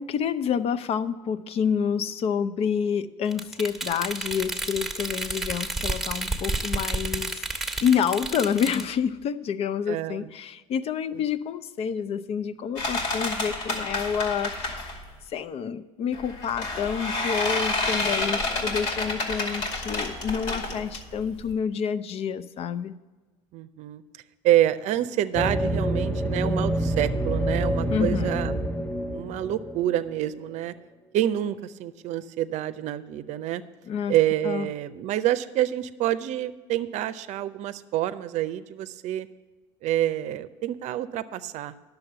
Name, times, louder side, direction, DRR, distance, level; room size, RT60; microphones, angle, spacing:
voice 1, 0.0-15.0 15.3-22.9 27.9-28.3 33.9-34.1 34.4-34.7, left 7 dB, 45° left, 14 dB, 0.6 m, -28 dB
sound 1, 3.3-8.9, right 2 dB, ahead, 1.4 m, -31 dB
voice 2, 9.9-10.3 11.1-11.2 23.5-24.0 24.4-28.6 29.1-30.7 31.1-33.6 34.1-39.3 39.8-41.7, right 13 dB, 55° right, 14 dB, 0.6 m, -27 dB
sound 2, 12.8-15.1 16.1-21.5, left 2 dB, 65° left, 2.5 m, -29 dB
sound 3, 25.3-30.1, right 1 dB, 15° left, 1.0 m, -27 dB
10.5 x 7.0 x 6.8 m, 1.3 s
supercardioid pair, 95°, 14 cm